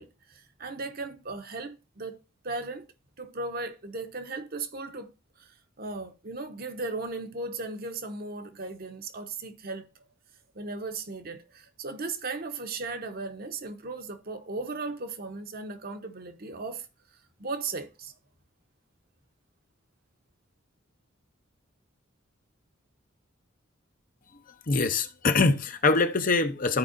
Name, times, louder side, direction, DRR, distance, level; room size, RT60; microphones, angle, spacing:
voice 1, 0.0-2.2 2.4-2.9 3.2-5.1 5.4-10.1 10.5-16.9 17.4-18.1, right 3 dB, 50° right, 1.0 m, -37 dB
voice 2, 24.7-26.8, left 3 dB, 45° left, 0.7 m, -24 dB
13.5 x 4.7 x 2.6 m
head